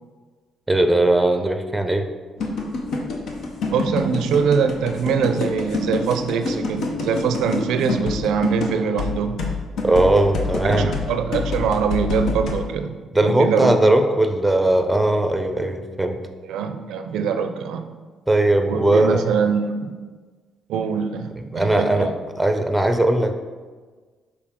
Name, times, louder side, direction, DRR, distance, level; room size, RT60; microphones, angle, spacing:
voice 1, 0.7-2.0 9.8-10.9 13.1-16.2 18.3-19.2 21.5-22.1 22.4-23.3, right 1 dB, 10° right, 7 dB, 0.6 m, -19 dB
sound 1, 2.4-12.6, left 3 dB, 70° left, 0.9 m, -26 dB
voice 2, 3.7-9.5 10.6-12.9 13.2-13.8 16.4-17.9 18.6-19.9 20.7-22.2, right 6 dB, 85° right, 8 dB, 0.4 m, -23 dB
6.8 x 4.7 x 3.7 m, 1.4 s
cardioid pair, 90°, 0 cm